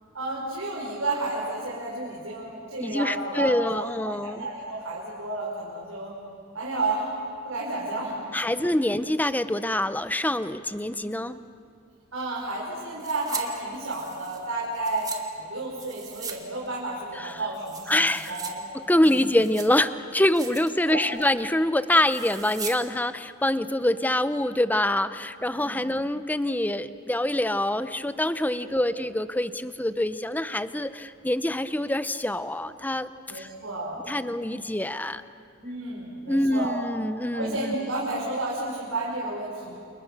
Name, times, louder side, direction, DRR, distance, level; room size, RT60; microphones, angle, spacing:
voice 1, 0.1-6.1 6.5-7.1 7.4-8.6 12.1-15.1 15.4-18.0 18.3-18.6 19.0-19.2 20.9-21.1 25.5-25.8 28.6-28.9 33.3-34.2 35.6-36.8 37.3-39.7, right 2 dB, 80° right, -5 dB, 5.4 m, -32 dB
voice 2, 2.8-4.5 8.3-11.4 17.2-17.4 17.9-18.4 18.7-33.5 34.1-35.2 36.3-37.7, left 1 dB, 10° left, 12 dB, 0.7 m, -25 dB
sound 1, 13.0-13.4 13.7-15.2 15.8-16.4 16.7-16.8 17.2-18.5 18.9-19.9 20.2-20.7 21.0-21.3 22.0-22.8 23.1-23.2, right 5 dB, 20° right, 2.2 m, -39 dB
29.5 x 29.0 x 6.9 m, 2.5 s
head